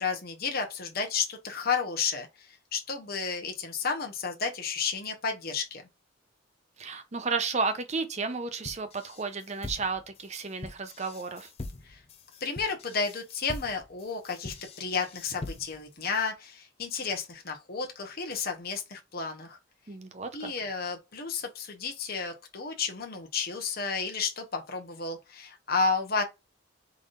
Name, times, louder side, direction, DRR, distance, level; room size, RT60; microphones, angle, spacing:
voice 1, 0.0-5.8 11.8-12.0 12.4-19.6 20.3-26.2, left 5 dB, 50° left, 1.0 m, -32 dB
voice 2, 6.8-11.5 19.9-20.5, right 4 dB, 35° right, 0.7 m, -32 dB
sound 1, 8.6-15.9, left 2 dB, 30° left, 0.5 m, -43 dB
3.9 x 3.4 x 2.6 m
head